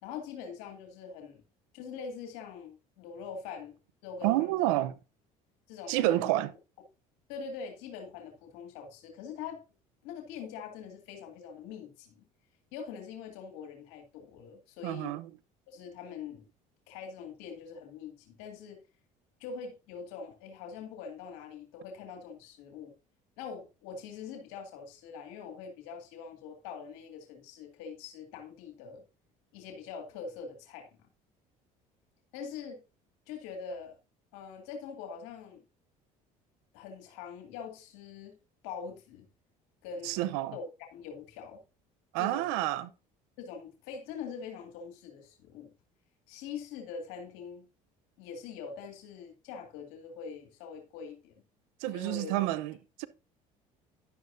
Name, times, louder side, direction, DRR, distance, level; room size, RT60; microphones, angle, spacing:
voice 1, 0.0-1.4 1.7-3.8 4.0-4.7 5.7-6.3 7.3-9.6 10.0-12.2 12.7-15.1 15.7-16.5 16.9-18.8 19.4-22.9 23.4-29.0 29.5-30.9 32.3-32.8 33.3-34.0 34.3-35.6 36.7-38.4 38.6-39.3 39.8-41.6 42.2-42.6 43.4-45.7 46.3-47.6 48.2-51.3 51.9-52.3, left 6 dB, 80° left, 2.1 m, -43 dB
voice 2, 4.2-4.9 5.9-6.5 14.8-15.3 40.0-40.6 42.1-42.9 51.8-53.1, right 15 dB, 85° right, 0.8 m, -29 dB
11.5 x 9.5 x 2.7 m
supercardioid pair, 80°, 17 cm